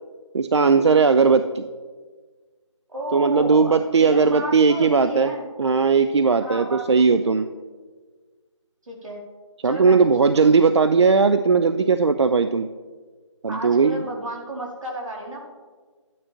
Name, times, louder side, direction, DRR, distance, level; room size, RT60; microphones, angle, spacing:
voice 1, 0.3-1.6 3.1-5.3 5.6-7.5 9.6-12.7 13.4-14.0, right 5 dB, 60° right, 10 dB, 0.4 m, -18 dB
voice 2, 2.9-5.4 6.4-7.3 8.9-9.2 9.6-10.5 13.5-15.5, equal, 85° right, -1 dB, 2.9 m, -33 dB
12.0 x 9.1 x 3.0 m, 1.5 s
figure-of-eight pair, 175°, 16 cm